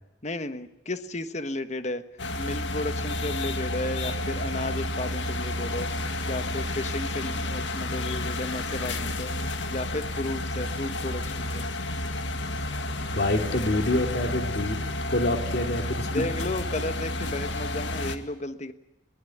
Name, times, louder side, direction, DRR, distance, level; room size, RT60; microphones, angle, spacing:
voice 1, 0.2-2.0 2.4-5.9 6.3-9.3 9.7-11.7 16.1-18.7, left 2 dB, 40° left, 10 dB, 1.3 m, -33 dB
sound 1, 2.2-18.2, left 1 dB, 85° left, 1.9 m, -31 dB
voice 2, 13.1-14.8 15.1-16.3, left 1 dB, 60° left, 5 dB, 3.0 m, -26 dB
22.0 x 19.0 x 9.3 m, 0.92 s
head